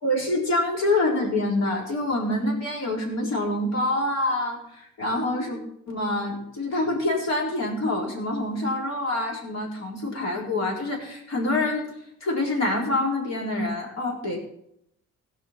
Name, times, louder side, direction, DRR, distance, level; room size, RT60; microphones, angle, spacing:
voice 1, 0.0-5.6 5.9-11.9 12.2-14.4, left 2 dB, 60° left, -1 dB, 4.1 m, -26 dB
16.0 x 5.9 x 5.8 m, 0.75 s
cardioid pair, 90°, 30 cm